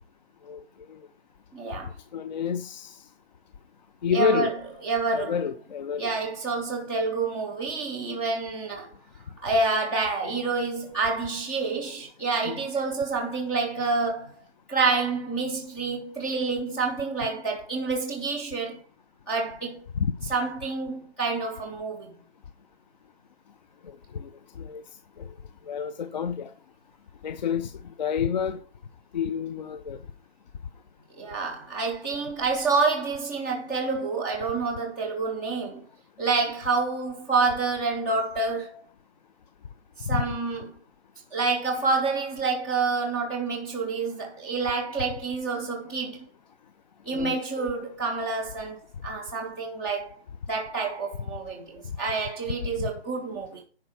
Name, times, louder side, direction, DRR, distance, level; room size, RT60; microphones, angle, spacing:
voice 1, 1.5-1.9 4.1-5.4 6.0-8.9 9.4-14.4 14.7-18.8 19.3-19.8 20.2-22.1 31.2-35.8 36.2-38.8 40.0-40.7 41.3-46.3 47.0-50.2 50.5-53.6, right 4 dB, ahead, 0.4 m, -28 dB
voice 2, 2.1-3.0 4.0-4.5 5.1-6.1 12.5-12.6 20.0-20.1 24.1-24.3 24.6-24.8 25.2-25.3 25.7-26.5 27.2-27.7 28.0-28.6 29.1-30.0 40.1-40.2 47.1-47.7 52.8-52.9, left 7 dB, 40° left, 0.6 m, -28 dB
10.5 x 4.6 x 6.8 m
hypercardioid pair, 150°, 34 cm